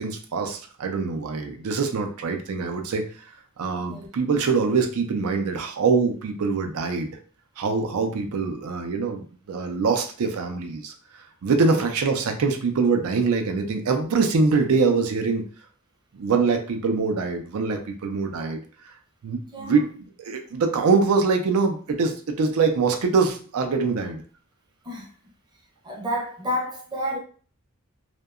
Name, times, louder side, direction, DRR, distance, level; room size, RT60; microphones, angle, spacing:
voice 1, 0.0-3.3 3.6-7.2 7.6-15.4 16.1-18.6 19.2-19.9 20.3-24.2, right 4 dB, 75° right, 0.4 m, -24 dB
voice 2, 3.7-4.1 11.6-11.9 19.5-19.8 24.8-25.1 25.8-27.2, equal, 20° right, 0.6 m, -30 dB
2.7 x 2.1 x 2.3 m
head